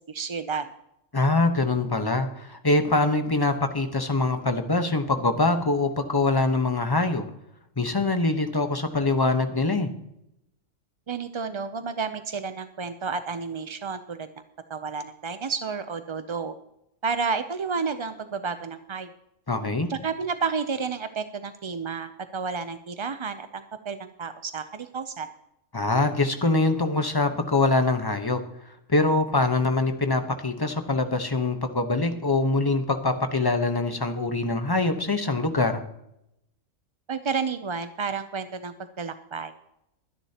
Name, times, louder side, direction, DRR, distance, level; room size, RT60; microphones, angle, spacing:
voice 1, 0.1-0.7 11.1-14.3 14.7-16.5 17.0-19.1 19.9-25.3 37.1-39.5, right 5 dB, 45° right, 10 dB, 0.3 m, -31 dB
voice 2, 1.1-7.2 7.8-9.9 19.5-19.9 25.7-28.4 28.9-35.8, left 2 dB, 20° left, 7 dB, 1.0 m, -24 dB
23.0 x 10.0 x 2.9 m, 0.81 s
omnidirectional pair, 1.3 m